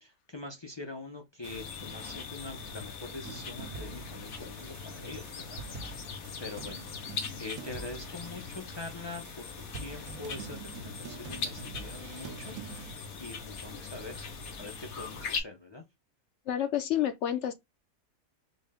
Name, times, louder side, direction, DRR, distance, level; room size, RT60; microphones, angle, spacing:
voice 1, 0.0-6.0 6.4-6.9 7.4-12.6 12.8-14.2 14.6-15.8, left 2 dB, 40° left, 0.3 m, -44 dB
sound 1, 1.4-15.4, left 5 dB, 90° left, 1.3 m, -41 dB
sound 2, 3.2-12.9, right 5 dB, 75° right, 1.0 m, -46 dB
voice 2, 16.5-17.5, left 11 dB, 65° left, 0.8 m, -29 dB
4.3 x 2.1 x 3.4 m
omnidirectional pair, 1.5 m